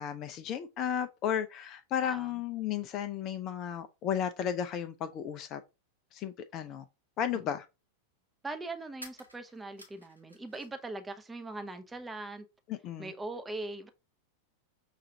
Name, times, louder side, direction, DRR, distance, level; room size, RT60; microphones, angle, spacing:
voice 1, 0.0-5.6 6.1-6.8 7.2-7.7 12.7-13.1, left 9 dB, 35° left, 0.4 m, -34 dB
voice 2, 2.0-2.3 8.4-12.5 13.0-13.9, right 2 dB, 10° right, 0.6 m, -41 dB
sound 1, 8.9-10.9 11.2-12.0, equal, 90° left, 0.9 m, -53 dB
5.6 x 2.4 x 2.7 m
figure-of-eight pair, 90°, 0 cm